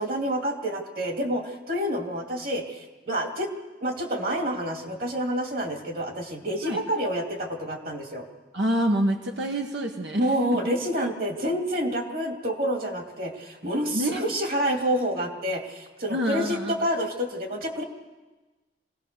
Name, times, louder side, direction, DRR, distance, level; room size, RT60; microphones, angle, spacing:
voice 1, 0.0-3.5 3.8-8.3 10.2-17.8, equal, 55° right, 3 dB, 2.6 m, -28 dB
voice 2, 8.5-10.6 13.9-14.2 16.1-16.8, right 1 dB, 85° right, 2 dB, 1.5 m, -27 dB
26.0 x 17.5 x 6.9 m, 1.2 s
head